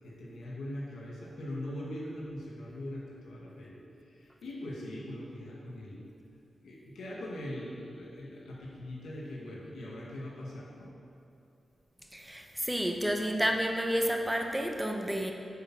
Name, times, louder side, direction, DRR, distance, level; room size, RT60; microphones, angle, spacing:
voice 1, 0.0-6.0 6.6-10.9, left 1 dB, 85° left, -4 dB, 1.7 m, -41 dB
voice 2, 12.1-15.3, equal, 10° right, 3 dB, 1.0 m, -30 dB
9.2 x 4.3 x 6.0 m, 2.8 s
cardioid pair, 45°, 0 cm